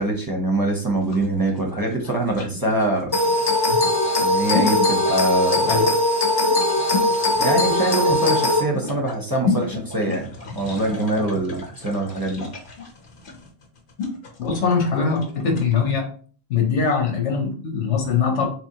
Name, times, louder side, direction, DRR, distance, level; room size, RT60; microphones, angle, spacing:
voice 1, 0.0-3.1 4.2-5.8 7.4-12.5, right 2 dB, 25° right, -1 dB, 0.6 m, -24 dB
sound 1, 1.0-15.7, left 4 dB, 50° left, 0.9 m, -32 dB
sound 2, 3.1-8.6, left 1 dB, 30° left, 0.5 m, -20 dB
voice 2, 14.4-16.1 16.5-18.5, left 5 dB, 90° left, 2 dB, 1.3 m, -22 dB
4.0 x 2.9 x 2.8 m, 0.43 s
omnidirectional pair, 1.2 m